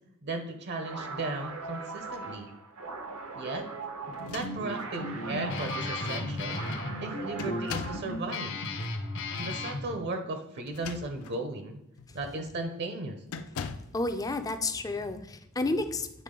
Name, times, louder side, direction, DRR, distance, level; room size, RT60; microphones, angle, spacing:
voice 1, 0.2-2.5 3.3-3.7 4.3-6.6 7.0-8.6 9.4-11.8 12.1-13.2, right 2 dB, 50° right, 6 dB, 0.7 m, -36 dB
sound 1, 0.8-8.2, right 3 dB, 80° right, 0.8 m, -40 dB
sound 2, 4.1-5.0 5.9-6.0 6.4-6.7 7.4-8.1 10.6-11.4 12.0-12.2 13.3-14.0, left 5 dB, 85° left, 0.5 m, -40 dB
Guitar, 4.1-9.8, left 2 dB, 60° left, 0.8 m, -35 dB
voice 2, 13.9-16.2, left 2 dB, 15° left, 8 dB, 0.4 m, -31 dB
8.3 x 3.5 x 3.7 m, 0.84 s
head